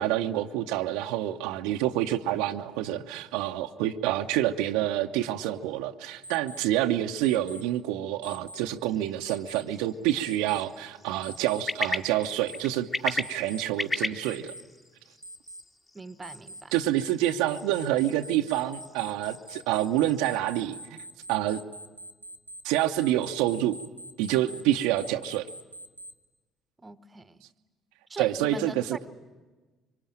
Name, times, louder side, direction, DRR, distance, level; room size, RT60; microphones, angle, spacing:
voice 1, 0.0-14.5 16.7-21.0 21.3-21.6 22.6-23.8 24.2-25.5 28.2-29.1, right 13 dB, 65° right, 5 dB, 0.8 m, -27 dB
Alarm, 6.2-6.6 7.2-7.6 8.2-8.6 9.2-9.6 10.2-10.6 11.2-11.6 12.2-12.6 13.2-13.6 14.2-14.6 15.2-15.6 16.2-26.1, right 1 dB, 90° right, 1.3 m, -43 dB
sound 1, 8.8-20.5, left 2 dB, 25° left, 2.3 m, -38 dB
voice 2, 15.9-16.7 26.8-27.4 28.1-29.0, right 3 dB, 25° right, 14 dB, 1.1 m, -41 dB
25.0 x 24.5 x 9.0 m, 1.3 s
figure-of-eight pair, 50°, 0 cm